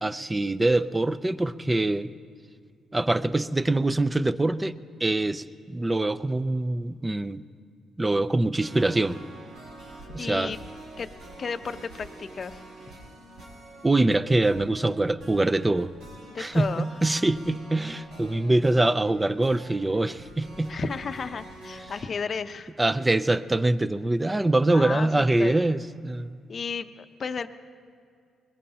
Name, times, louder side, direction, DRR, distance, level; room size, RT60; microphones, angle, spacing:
voice 1, 0.0-2.1 2.9-4.8 5.0-7.4 8.0-9.2 10.1-10.5 13.8-15.9 16.4-20.7 22.8-26.4, right 2 dB, 15° right, 14 dB, 0.5 m, -24 dB
sound 1, 8.6-22.0, right 1 dB, 85° right, 5.2 m, -46 dB
voice 2, 10.2-10.6 11.0-11.1 11.4-12.6 16.3-16.9 20.7-22.7 24.7-25.5 26.5-27.5, left 5 dB, 45° left, 9 dB, 0.6 m, -33 dB
22.5 x 21.0 x 2.9 m, 2.3 s
cardioid pair, 90°, 0 cm